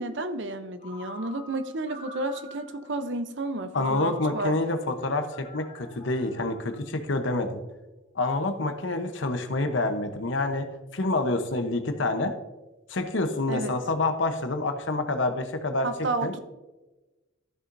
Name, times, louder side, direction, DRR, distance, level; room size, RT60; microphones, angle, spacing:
voice 1, 0.0-4.5 13.5-13.7 15.8-16.4, right 2 dB, 60° right, 9 dB, 0.7 m, -31 dB
Ringtone, 0.8-2.9 3.7-7.1, left 1 dB, 35° left, 1.6 m, -46 dB
voice 2, 3.7-7.6 8.1-12.4 12.9-15.9 16.2-16.3, left 2 dB, 65° left, 7 dB, 0.9 m, -27 dB
13.0 x 6.9 x 2.6 m, 1.1 s
head